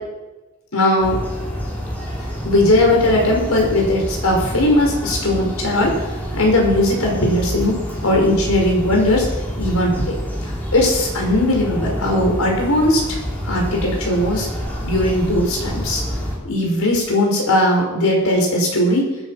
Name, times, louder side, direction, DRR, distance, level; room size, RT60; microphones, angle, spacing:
voice 1, 0.7-1.2 2.4-5.9 6.3-7.8 8.0-9.3 9.6-10.1 10.7-13.0 13.4-14.5 14.8-16.0 16.4-19.1, left 1 dB, 85° left, 0 dB, 5.5 m, -18 dB
sound 1, 1.0-16.4, equal, 10° left, 3.6 m, -27 dB
20.0 x 9.9 x 5.9 m, 1.1 s
head